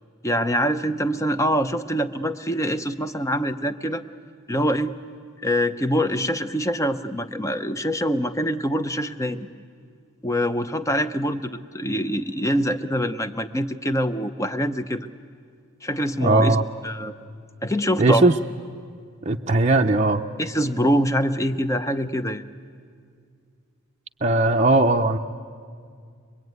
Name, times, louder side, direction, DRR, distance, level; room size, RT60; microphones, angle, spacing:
voice 1, 0.2-4.0 4.5-5.0 5.4-9.5 10.2-15.1 15.8-16.6 16.8-17.1 17.6-18.3 20.4-22.5, equal, 15° left, 10 dB, 0.7 m, -24 dB
voice 2, 16.2-16.6 18.0-18.4 19.2-20.2 24.2-25.2, right 2 dB, 35° right, 2 dB, 0.6 m, -18 dB
23.5 x 23.0 x 9.4 m, 2.1 s
head